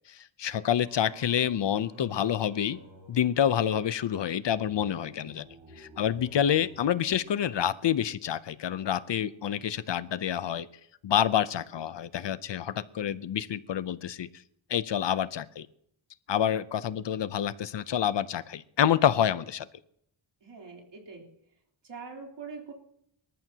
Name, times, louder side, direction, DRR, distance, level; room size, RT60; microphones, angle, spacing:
voice 1, 0.0-2.8 3.1-5.4 5.8-10.7 11.0-14.3 14.7-15.7 16.3-19.7, left 9 dB, 65° left, 15 dB, 0.7 m, -28 dB
Singing, 0.6-8.0, right 2 dB, 80° right, 5.1 m, -52 dB
voice 2, 20.4-21.3 21.8-22.7, right 5 dB, 65° right, 0 dB, 3.4 m, -43 dB
25.5 x 13.5 x 2.9 m, 0.73 s
wide cardioid pair, 170°, 47 cm